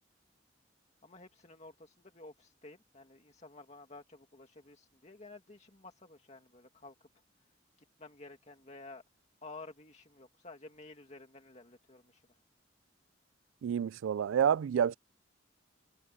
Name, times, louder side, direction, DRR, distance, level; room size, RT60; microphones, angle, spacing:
voice 1, 1.0-7.1 8.0-9.0 9.4-12.4, left 3 dB, 35° left, 2.1 m, -52 dB
voice 2, 13.6-14.9, right 8 dB, 80° right, 0.3 m, -28 dB
head